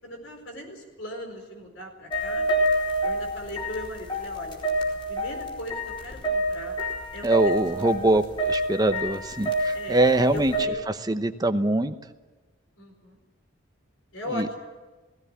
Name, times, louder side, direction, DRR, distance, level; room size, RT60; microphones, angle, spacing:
voice 1, 0.0-2.4 3.0-4.6 5.1-6.8 7.1-7.5 8.0-8.2 9.7-10.0 10.3-10.8 12.8-13.2 14.1-14.6, left 1 dB, 70° left, 3 dB, 4.6 m, -38 dB
sound 1, 2.1-10.7, right 1 dB, 25° left, 4.1 m, -28 dB
voice 2, 7.2-10.5 11.1-11.9 14.3-14.5, right 2 dB, 20° right, 8 dB, 0.9 m, -23 dB
18.0 x 17.0 x 9.9 m, 1.2 s
head